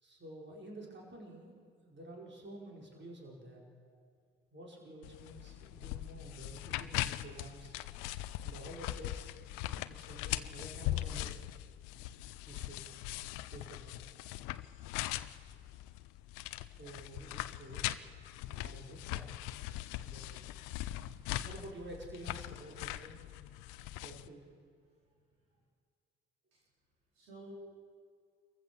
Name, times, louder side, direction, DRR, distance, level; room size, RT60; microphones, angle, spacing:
voice 1, 0.0-3.6 4.5-7.7 8.4-9.5 9.9-11.5 12.4-12.9 13.5-14.0 16.6-17.9 18.4-19.4 20.0-20.5 21.4-23.2 24.0-24.5, right 1 dB, 40° right, -1 dB, 5.0 m, -50 dB
sound 1, 5.0-24.3, left 15 dB, 80° left, 0.6 m, -41 dB
voice 2, 20.8-21.3 23.9-24.0 25.0-25.1 25.5-25.6 26.5-26.6 27.1-27.5, right 2 dB, 90° right, -5 dB, 4.5 m, -57 dB
25.5 x 15.0 x 7.1 m, 2.1 s
hypercardioid pair, 45°, 30 cm